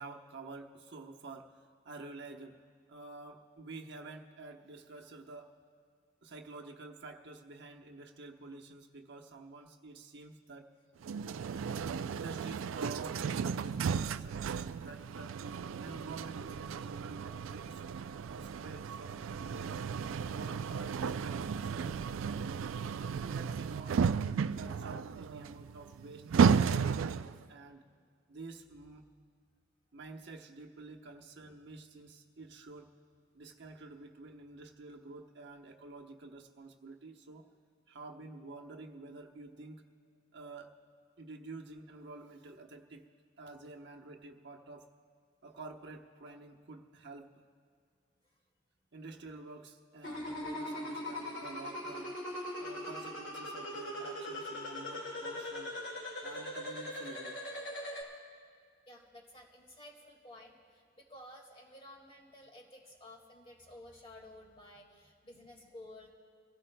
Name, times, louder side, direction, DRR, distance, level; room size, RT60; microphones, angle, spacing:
voice 1, 0.0-2.6 2.9-5.5 6.2-10.7 12.1-15.4 15.8-17.8 18.3-19.8 20.3-22.7 23.1-27.8 28.3-29.0 29.9-32.9 33.3-37.5 37.9-39.9 40.3-40.7 41.2-43.0 43.4-44.9 45.4-47.3 48.9-52.1 52.6-55.7 56.2-57.4, right 3 dB, 60° right, 2 dB, 1.0 m, -49 dB
sound 1, 11.0-27.4, right 6 dB, 90° right, 0.4 m, -34 dB
sound 2, 50.0-58.0, left 1 dB, 60° left, 3.0 m, -40 dB
voice 2, 58.9-66.1, left 1 dB, 30° left, 0 dB, 2.0 m, -53 dB
27.0 x 16.5 x 2.2 m, 2.2 s
head